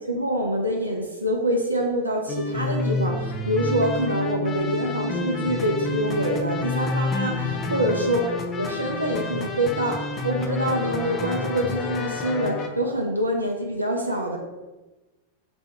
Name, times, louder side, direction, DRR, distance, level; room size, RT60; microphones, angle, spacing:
voice 1, 0.1-8.3 8.6-14.4, right 1 dB, 85° right, 1 dB, 0.5 m, -25 dB
sound 1, 2.3-12.7, left 3 dB, 25° left, 0.5 m, -29 dB
3.5 x 3.4 x 4.1 m, 1.1 s
figure-of-eight pair, 90°, 0 cm